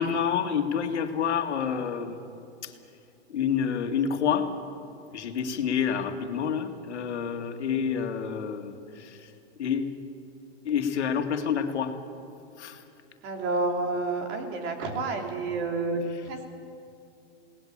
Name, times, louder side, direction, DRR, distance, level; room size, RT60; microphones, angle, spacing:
voice 1, 0.0-2.2 2.6-2.7 3.3-4.5 5.1-9.2 9.6-9.9 10.6-11.9 12.6-12.8, left 7 dB, 90° left, 6 dB, 2.2 m, -28 dB
voice 2, 13.2-16.5, right 3 dB, 35° right, 3 dB, 3.3 m, -29 dB
21.0 x 18.5 x 8.7 m, 2.6 s
hypercardioid pair, 140°, 33 cm